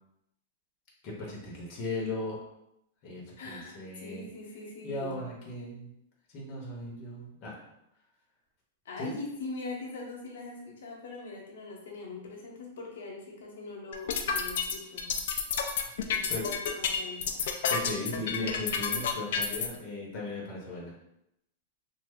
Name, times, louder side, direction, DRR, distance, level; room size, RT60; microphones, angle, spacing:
voice 1, 1.0-2.4 3.0-4.2 4.8-5.9 6.3-7.6 9.0-9.1 16.3-16.5 17.7-20.9, left 2 dB, 30° left, -4 dB, 0.8 m, -37 dB
voice 2, 3.4-5.2 8.8-15.1 16.1-17.5, left 3 dB, 85° left, -1 dB, 0.8 m, -42 dB
sound 1, 13.9-19.7, left 6 dB, 55° left, 0.3 m, -30 dB
3.1 x 2.0 x 3.5 m, 0.82 s
supercardioid pair, 175°, 0 cm